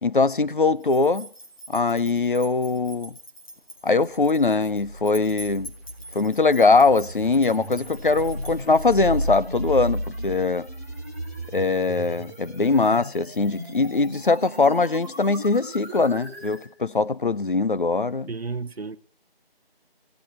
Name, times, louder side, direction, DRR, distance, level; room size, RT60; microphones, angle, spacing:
voice 1, 0.0-1.3 1.7-3.1 3.8-5.7 6.1-10.7 11.5-18.3, left 3 dB, 55° left, 0.7 m, -21 dB
sound 1, 0.8-9.1, equal, 35° left, 2.4 m, -45 dB
sound 2, 4.6-16.7, right 1 dB, 15° left, 1.2 m, -34 dB
voice 2, 18.3-19.0, right 4 dB, 85° right, 1.1 m, -32 dB
25.5 x 16.0 x 3.2 m
figure-of-eight pair, 175°, 30 cm